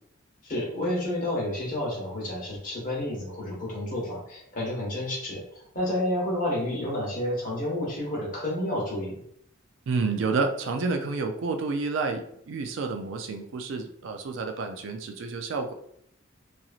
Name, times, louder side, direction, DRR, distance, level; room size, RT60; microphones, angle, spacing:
voice 1, 0.4-5.4 5.7-9.1, left 1 dB, 40° left, -4 dB, 1.2 m, -30 dB
voice 2, 9.9-15.7, right 4 dB, 70° right, 6 dB, 0.4 m, -29 dB
2.9 x 2.6 x 2.4 m, 0.71 s
head